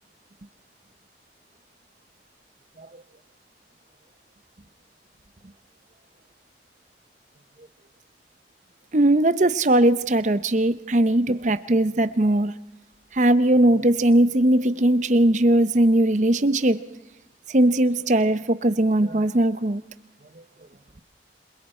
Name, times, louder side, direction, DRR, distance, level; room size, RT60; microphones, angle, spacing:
voice 1, 8.9-12.5 13.1-16.8 17.5-19.8, right 1 dB, 40° right, 13 dB, 0.8 m, -19 dB
27.5 x 22.5 x 4.4 m, 0.94 s
head